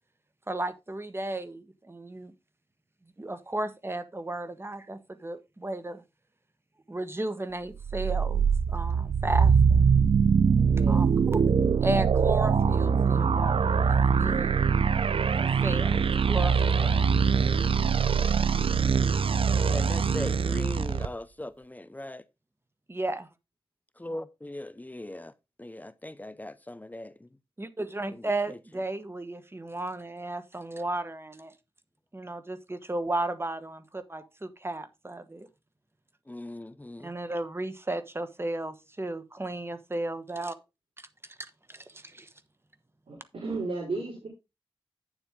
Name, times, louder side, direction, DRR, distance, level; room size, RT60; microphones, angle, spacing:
voice 1, 0.5-2.3 3.2-6.0 6.9-9.9 10.9-11.4 11.8-14.5 15.4-16.9 22.9-23.3 27.6-31.5 32.1-35.5 37.0-40.5 41.7-42.3, right 2 dB, 25° right, 1.2 m, -34 dB
sound 1, 7.8-21.1, right 6 dB, 75° right, 0.6 m, -23 dB
voice 2, 10.7-11.1 17.6-18.3 40.3-40.4 43.1-44.3, right 3 dB, 90° right, 3.7 m, -36 dB
voice 3, 19.5-22.2 24.0-25.3 25.6-27.3 28.1-28.6 36.3-37.1, left 1 dB, 15° left, 0.6 m, -39 dB
9.0 x 7.3 x 3.6 m
wide cardioid pair, 70°, 9 cm